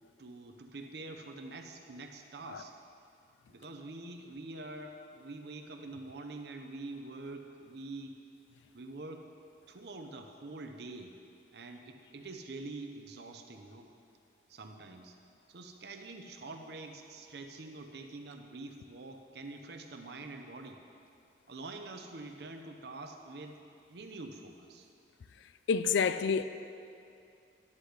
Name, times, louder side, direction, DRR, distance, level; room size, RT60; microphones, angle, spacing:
voice 1, 0.2-2.8 3.5-8.1 8.7-9.3 9.7-11.1 11.5-13.9 14.5-15.2 15.5-20.8 21.5-23.6 23.9-24.9, right 2 dB, 60° right, 4 dB, 0.6 m, -45 dB
voice 2, 25.7-26.4, left 6 dB, 80° left, 12 dB, 0.3 m, -28 dB
11.5 x 9.7 x 3.3 m, 2.5 s
head